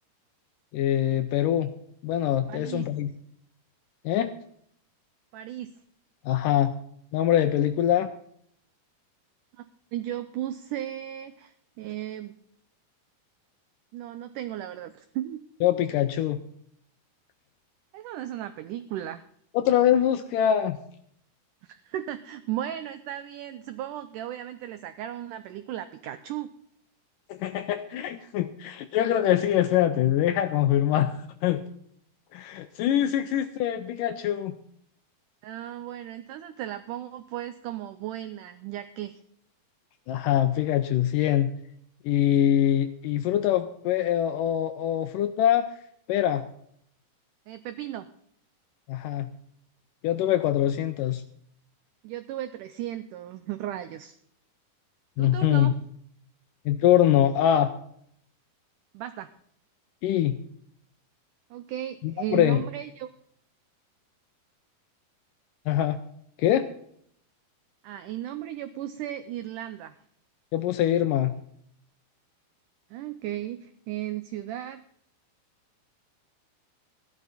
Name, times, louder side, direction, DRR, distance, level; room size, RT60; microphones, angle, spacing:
voice 1, 0.7-1.7 2.0-3.1 4.1-4.3 6.3-6.7 7.1-8.1 15.6-16.4 19.5-20.8 27.3-31.6 32.3-34.5 40.1-41.5 42.1-45.7 46.1-46.5 48.9-49.3 50.0-51.2 55.2-55.7 56.7-57.7 60.0-60.4 62.0-62.6 65.7-66.0 66.4-66.7 70.5-71.3, left 11 dB, 80° left, 9 dB, 2.0 m, -23 dB
voice 2, 2.5-2.9 5.3-5.7 9.9-12.4 13.9-15.4 17.9-19.2 21.6-26.5 35.4-39.2 47.5-48.1 52.0-54.2 55.2-55.8 58.9-59.3 61.5-63.1 67.8-69.9 72.9-74.8, right 12 dB, 85° right, 11 dB, 1.8 m, -35 dB
15.0 x 11.5 x 4.1 m, 0.67 s
omnidirectional pair, 4.3 m